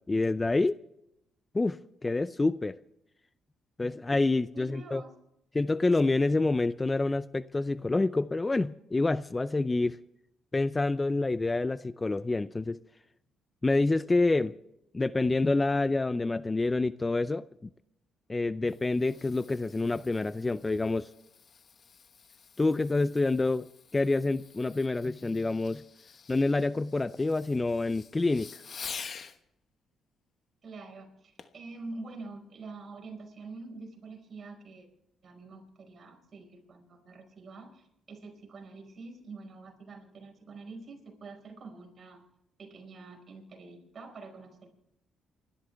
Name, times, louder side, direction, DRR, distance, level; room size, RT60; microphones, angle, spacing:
voice 1, 0.1-0.8 1.5-1.8 2.0-2.8 3.8-5.0 5.5-10.0 10.5-12.8 13.6-14.5 14.9-17.7 18.3-21.1 22.6-23.7 23.9-25.8 26.3-28.6, left 2 dB, 20° left, 0.4 m, -27 dB
voice 2, 4.5-5.2 30.6-34.9 35.2-42.2 42.6-44.7, right 3 dB, 50° right, 5.0 m, -46 dB
Fireworks, 18.4-29.4 31.4-31.7 32.2-32.3, left 6 dB, 50° left, 1.2 m, -48 dB
28.0 x 13.0 x 3.4 m
cardioid pair, 90°, 0 cm